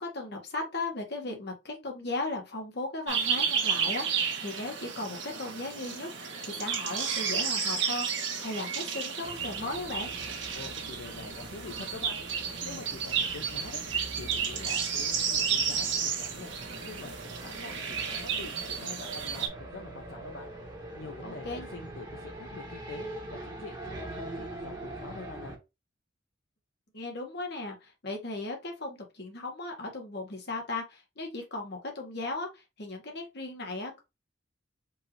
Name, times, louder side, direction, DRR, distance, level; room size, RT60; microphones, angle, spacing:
voice 1, 0.0-10.1 21.2-21.7 26.9-34.0, left 2 dB, 60° left, 1.5 m, -37 dB
sound 1, 3.1-19.5, right 6 dB, 70° right, 1.3 m, -32 dB
sound 2, 9.2-25.6, right 1 dB, 20° right, 1.3 m, -44 dB
voice 2, 10.5-12.2 12.6-13.8 14.1-16.5 16.8-20.5 21.0-25.6, left 3 dB, 75° left, 0.7 m, -45 dB
4.5 x 2.7 x 3.1 m
head